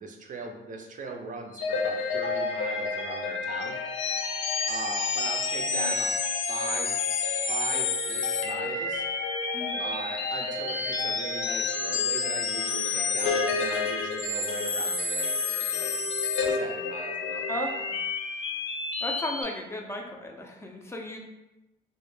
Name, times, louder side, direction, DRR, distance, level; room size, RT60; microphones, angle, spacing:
voice 1, 0.0-3.8 4.7-6.2 6.5-6.9 7.5-9.0 9.8-16.0 16.4-17.4, right 4 dB, 40° right, 2 dB, 0.4 m, -39 dB
sound 1, 1.5-19.4, left 4 dB, 75° left, 0.4 m, -29 dB
voice 2, 9.5-9.8 17.5-18.0 19.0-21.2, left 1 dB, 15° left, 1 dB, 0.4 m, -35 dB
2.2 x 2.0 x 3.1 m, 0.96 s
cardioid pair, 90°, 20 cm